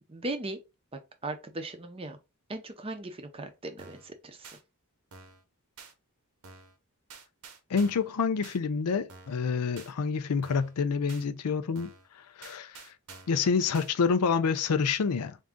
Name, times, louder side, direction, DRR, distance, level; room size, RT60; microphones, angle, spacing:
voice 1, 0.1-0.6 1.2-2.2 2.5-4.6, right 2 dB, 25° right, 0.5 m, -38 dB
sound 1, 3.8-4.1 4.4-4.6 5.1-5.4 5.8-5.9 6.4-6.8 7.1-8.1 8.4-8.6 9.1-9.4 9.8-9.9 10.4-10.8 11.1-11.3 11.8-12.1 12.4-13.4 13.7-13.9, right 4 dB, 80° right, 0.8 m, -49 dB
voice 2, 7.7-11.9 12.4-12.8 13.3-15.4, left 5 dB, 85° left, 0.5 m, -27 dB
3.5 x 2.6 x 3.5 m
head